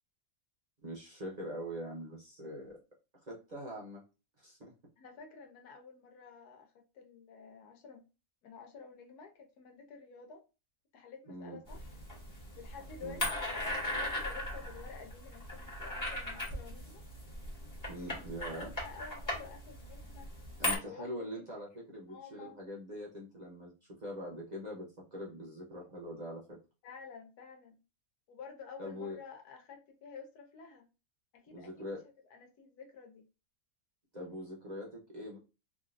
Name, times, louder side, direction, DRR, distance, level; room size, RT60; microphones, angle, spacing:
voice 1, 0.8-2.8 3.3-4.0 4.4-4.7 11.3-11.6 13.0-13.3 17.9-18.7 20.6-26.6 28.8-29.2 31.5-32.0 34.1-35.4, equal, 35° right, 0.9 m, -43 dB
voice 2, 5.0-8.0 8.4-10.4 10.9-11.9 12.6-17.0 17.8-17.9 18.4-20.3 20.8-21.4 22.1-22.5 26.8-27.8 28.3-30.9 31.3-32.0 32.3-33.2, left 5 dB, 85° left, 1.4 m, -51 dB
sound 1, 11.7-20.8, left 1 dB, 15° left, 1.1 m, -38 dB
3.5 x 2.5 x 2.5 m
omnidirectional pair, 1.6 m